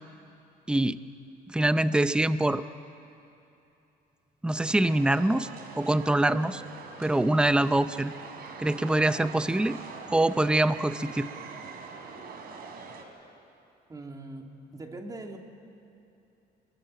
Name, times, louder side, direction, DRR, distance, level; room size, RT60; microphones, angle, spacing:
voice 1, 0.7-1.0 1.5-2.6 4.4-5.5 5.8-6.6 7.0-8.1 8.6-9.8 10.1-11.3, right 1 dB, 5° right, 12 dB, 0.7 m, -24 dB
sound 1, 4.8-13.0, right 5 dB, 65° right, 3.3 m, -43 dB
voice 2, 13.9-15.4, right 2 dB, 20° right, 3 dB, 2.6 m, -41 dB
24.0 x 22.0 x 7.7 m, 2.9 s
cardioid pair, 110°, 17 cm